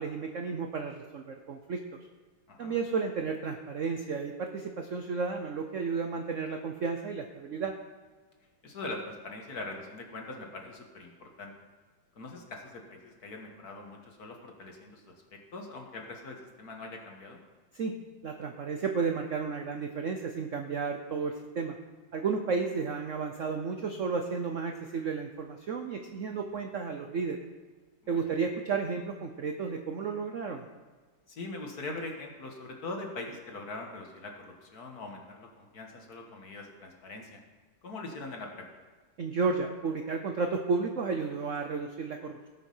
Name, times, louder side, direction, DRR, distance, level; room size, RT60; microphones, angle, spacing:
voice 1, 0.0-1.8 2.6-7.7 17.7-17.9 18.2-21.8 22.1-27.4 28.1-30.6 39.2-42.5, right 5 dB, 70° right, 5 dB, 0.7 m, -32 dB
voice 2, 2.5-2.8 8.6-11.5 12.2-15.2 15.5-17.4 26.3-26.4 28.0-28.4 31.3-37.4 37.8-38.7, left 2 dB, 50° left, 2 dB, 1.8 m, -42 dB
17.5 x 6.4 x 5.5 m, 1.4 s
omnidirectional pair, 2.4 m